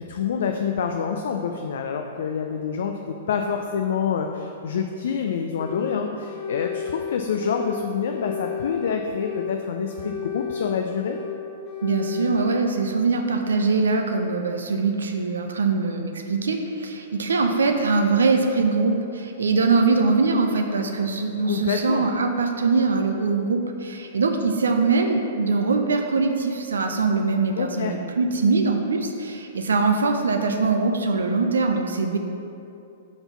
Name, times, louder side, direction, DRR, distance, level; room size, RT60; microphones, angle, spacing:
voice 1, 0.1-11.2 21.4-22.1 27.6-27.9, left 6 dB, 60° left, 4 dB, 0.4 m, -27 dB
sound 1, 5.6-6.0 6.3-7.8 8.0-9.6 9.9-11.4 11.6-12.6, left 7 dB, 35° left, 0.8 m, -32 dB
voice 2, 11.8-32.2, right 4 dB, 70° right, 4 dB, 0.5 m, -22 dB
5.1 x 4.0 x 5.8 m, 2.7 s
figure-of-eight pair, 105°, 0 cm